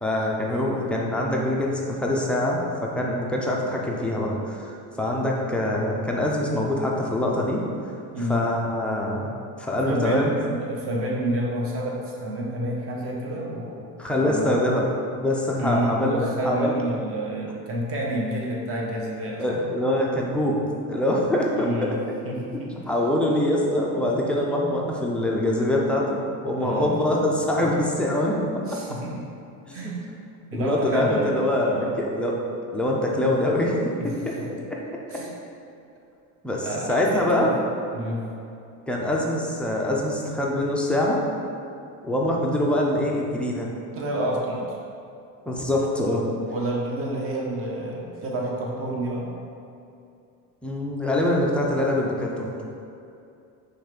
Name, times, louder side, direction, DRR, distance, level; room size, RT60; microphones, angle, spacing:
voice 1, 0.0-4.7 5.0-7.6 8.3-9.3 9.6-10.3 14.0-14.9 15.2-16.7 19.4-20.6 20.9-22.0 22.9-26.2 26.4-28.8 29.7-29.8 30.5-32.4 32.7-34.0 34.3-34.4 34.7-34.8 36.4-37.5 38.9-41.2 42.0-43.7 45.5-46.3 50.6-52.5, left 1 dB, 5° left, -3 dB, 0.3 m, -24 dB
voice 2, 8.1-8.4 9.8-13.9 14.2-14.6 15.6-19.6 21.6-22.7 26.6-26.9 27.6-27.8 28.7-29.2 29.7-30.0 30.5-31.9 34.0-34.5 35.1-35.3 36.6-37.6 37.9-38.2 43.9-44.8 46.5-49.3, right 1 dB, 40° right, -2 dB, 1.0 m, -29 dB
5.5 x 3.3 x 5.1 m, 2.6 s
cardioid pair, 165°, 36 cm